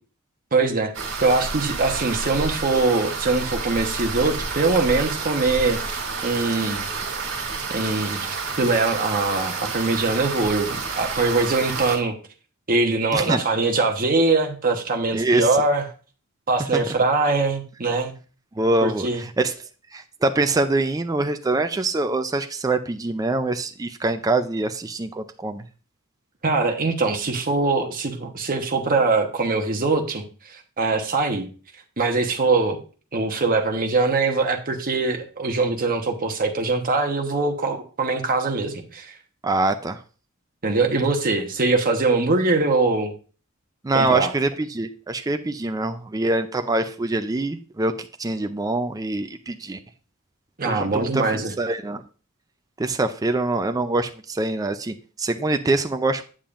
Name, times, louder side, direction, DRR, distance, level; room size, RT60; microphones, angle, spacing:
voice 1, 0.5-0.9 1.2-6.9 7.7-12.1 12.7-15.8 16.5-18.1 18.8-19.2 26.4-31.5 32.0-32.8 33.1-39.1 40.6-43.1 43.9-44.3 50.6-51.5, right 3 dB, 40° right, 3 dB, 1.1 m, -22 dB
sound 1, 0.9-12.0, right 4 dB, 55° right, 2.4 m, -30 dB
voice 2, 13.1-13.4 15.1-15.5 16.7-16.8 18.6-19.5 19.9-25.6 39.4-40.0 43.8-49.8 50.6-52.0 52.8-56.2, right 2 dB, 15° right, 8 dB, 0.4 m, -24 dB
8.6 x 7.4 x 2.5 m, 0.37 s
head